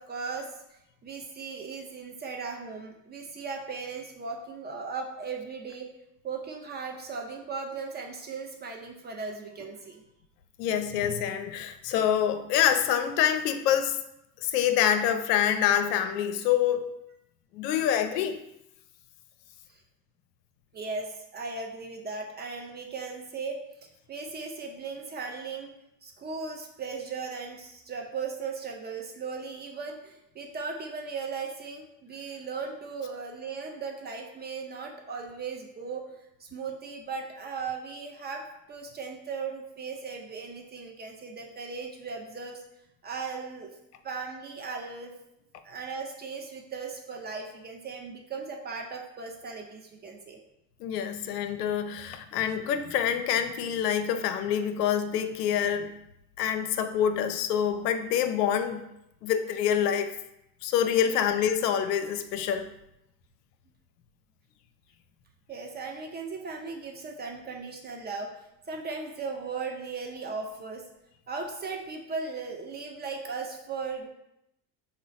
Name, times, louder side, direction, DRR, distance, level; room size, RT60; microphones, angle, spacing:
voice 1, 0.0-5.9 6.2-10.0 19.7-19.8 20.7-25.7 26.0-42.6 43.0-43.7 44.0-45.1 45.6-50.4 61.0-61.2 65.5-68.3 68.7-70.9 71.3-74.1, right 4 dB, 20° right, 2 dB, 0.4 m, -37 dB
voice 2, 10.6-14.0 14.4-16.9 17.5-18.4 50.8-55.9 56.4-58.9 59.2-60.1 60.6-62.7, left 9 dB, 75° left, 9 dB, 0.5 m, -26 dB
3.9 x 2.1 x 3.9 m, 0.83 s
hypercardioid pair, 70°, 49 cm